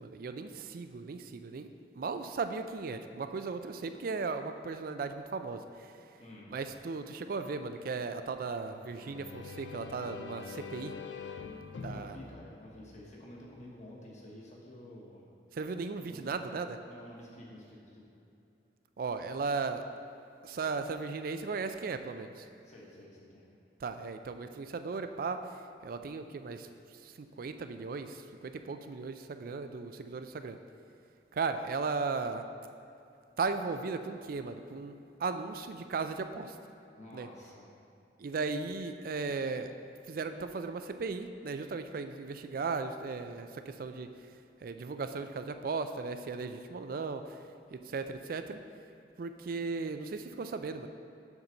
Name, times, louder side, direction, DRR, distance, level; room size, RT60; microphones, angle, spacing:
voice 1, 0.0-1.7 2.0-5.9 6.5-10.9 11.8-12.2 15.5-16.8 19.0-19.8 20.4-22.5 23.8-25.4 25.8-26.7 27.0-30.6 31.3-32.4 33.4-36.5 37.1-37.3 38.2-39.7 40.1-44.1 44.6-47.2 47.7-48.6 49.2-50.9, right 4 dB, 55° right, 9 dB, 0.4 m, -36 dB
voice 2, 6.2-6.5 11.9-15.3 16.0-16.3 16.9-18.1 22.6-23.5 37.0-37.7, left 1 dB, 40° left, -3 dB, 1.3 m, -50 dB
sound 1, 8.7-13.4, left 5 dB, 90° left, 0.5 m, -45 dB
7.2 x 4.0 x 6.4 m, 2.7 s
head